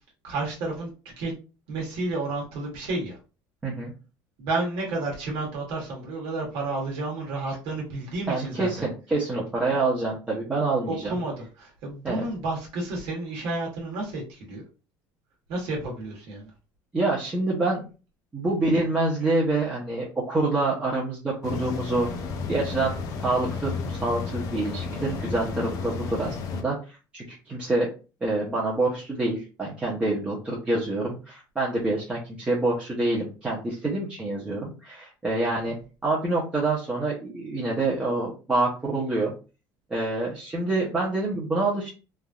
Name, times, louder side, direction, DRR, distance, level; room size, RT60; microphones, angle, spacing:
voice 1, 0.2-0.9 1.2-1.3 1.7-3.2 4.4-8.8 9.7-9.9 10.9-14.6 15.5-16.5 35.6-35.7, right 2 dB, 75° right, -2 dB, 1.3 m, -31 dB
voice 2, 8.3-11.2 12.0-12.2 16.9-17.8 18.3-22.1 22.5-22.9 23.2-26.8 27.1-27.9 28.2-35.8 36.0-39.3 39.9-41.9, right 2 dB, 15° right, -6 dB, 0.8 m, -26 dB
sound 1, 21.4-26.6, left 4 dB, 45° left, 0.6 m, -33 dB
3.3 x 2.6 x 2.3 m, 0.33 s
cardioid pair, 160°, 8 cm